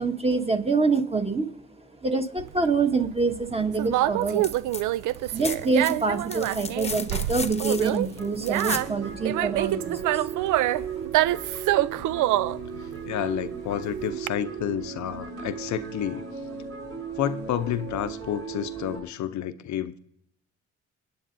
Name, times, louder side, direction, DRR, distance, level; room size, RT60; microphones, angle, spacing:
voice 1, 0.0-1.5 2.0-4.5 5.2-10.4 10.6-11.1, right 4 dB, 20° right, 1.5 m, -26 dB
Conversation, 2.4-14.3, right 15 dB, 80° right, 0.5 m, -27 dB
sound 1, 4.2-4.8 5.1-8.9 10.6-10.7, left 4 dB, 20° left, 1.0 m, -35 dB
sound 2, 7.6-19.0, right 6 dB, 55° right, 4.4 m, -37 dB
voice 2, 13.1-16.2 17.2-20.0, left 10 dB, 70° left, 0.7 m, -30 dB
28.5 x 9.6 x 2.7 m
cardioid pair, 90°, 30 cm